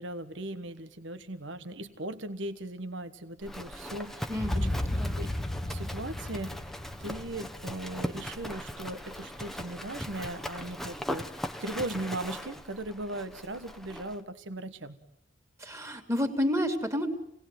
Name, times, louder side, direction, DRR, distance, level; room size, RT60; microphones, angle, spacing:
voice 1, 0.0-4.9 5.2-5.3 5.7-6.6 7.0-15.0, right 1 dB, 70° right, 10 dB, 1.4 m, -38 dB
Livestock farm animals working animals, 3.4-14.2, equal, ahead, 1.1 m, -40 dB
sound 1, 4.3-8.4, left 1 dB, 30° left, 1.1 m, -34 dB
voice 2, 4.3-5.2 15.6-17.1, left 1 dB, 15° right, 5 dB, 2.9 m, -30 dB
27.5 x 19.0 x 9.3 m, 0.77 s
head